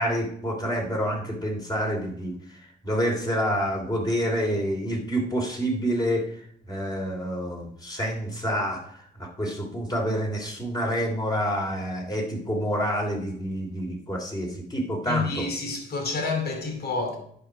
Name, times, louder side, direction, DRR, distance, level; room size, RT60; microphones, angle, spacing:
voice 1, 0.0-6.3 6.7-15.5, equal, 20° left, 3.1 m, -28 dB
voice 2, 15.0-17.2, left 3 dB, 50° left, 2.6 m, -29 dB
10.0 x 5.6 x 4.6 m
cardioid pair, 90°, 20 cm